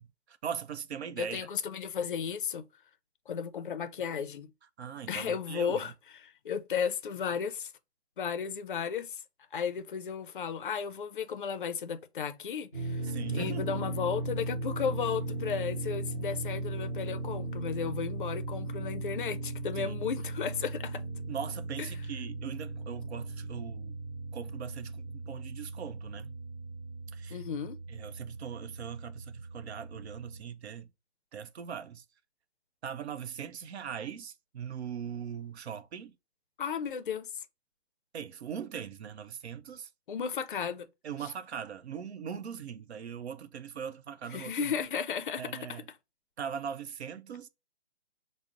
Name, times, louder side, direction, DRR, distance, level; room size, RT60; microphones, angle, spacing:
voice 1, 0.0-1.5 4.8-5.9 13.0-13.7 19.8-20.0 21.3-24.0 24.3-26.3 27.1-27.4 27.9-30.9 31.3-32.0 32.8-36.1 38.1-39.9 41.0-44.7 45.4-45.9 46.4-47.5, right 8 dB, 70° right, 0.6 m, -40 dB
voice 2, 1.2-2.6 3.3-4.5 5.1-7.7 8.2-9.2 9.5-13.0 13.3-21.0 21.8-21.9 27.3-27.8 36.6-37.3 40.1-40.9 44.3-45.8, left 7 dB, 50° left, 0.4 m, -34 dB
sound 1, 12.7-30.4, right 2 dB, 10° right, 0.5 m, -38 dB
4.9 x 2.0 x 2.4 m
hypercardioid pair, 170°, 34 cm